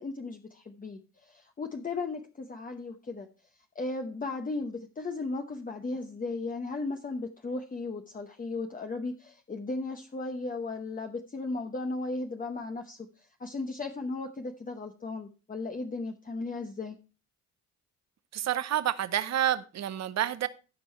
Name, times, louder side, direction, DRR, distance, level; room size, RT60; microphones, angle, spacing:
voice 1, 0.0-3.3 3.7-17.0, left 3 dB, 25° left, 1.0 m, -36 dB
voice 2, 18.3-20.5, right 11 dB, 60° right, 0.9 m, -29 dB
14.5 x 5.4 x 4.5 m
cardioid pair, 90°, 30 cm